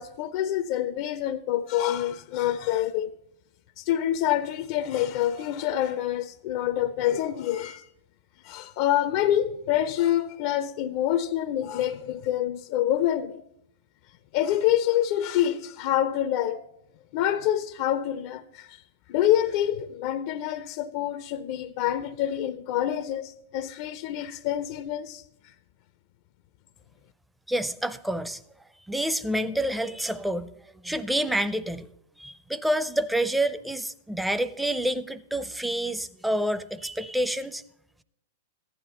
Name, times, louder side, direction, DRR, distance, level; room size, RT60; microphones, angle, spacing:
voice 1, 0.0-3.1 3.8-7.8 8.4-13.4 14.3-16.6 17.1-18.8 19.1-25.2, left 11 dB, 50° left, 0.4 m, -26 dB
voice 2, 27.5-28.4 28.9-30.5 30.8-31.9 32.2-37.6, right 1 dB, 5° right, 0.5 m, -28 dB
14.5 x 9.8 x 2.9 m
figure-of-eight pair, 100°, 0 cm